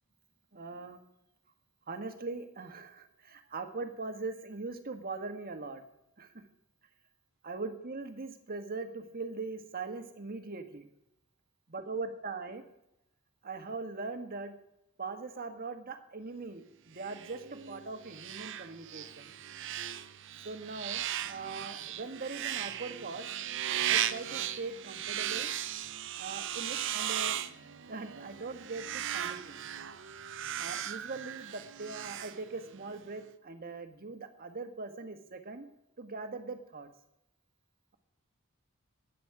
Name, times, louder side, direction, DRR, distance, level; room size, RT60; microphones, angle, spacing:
voice 1, 0.5-1.0 1.9-5.8 6.2-6.4 7.4-10.9 11.7-12.6 13.4-14.6 15.0-19.3 20.4-23.3 23.9-25.5 26.1-27.4 27.9-29.7 30.6-35.7 36.0-36.9, right 3 dB, 45° right, 7 dB, 1.5 m, -41 dB
sound 1, 17.0-32.9, right 11 dB, 60° right, 0.7 m, -37 dB
16.0 x 10.0 x 4.8 m, 0.83 s
head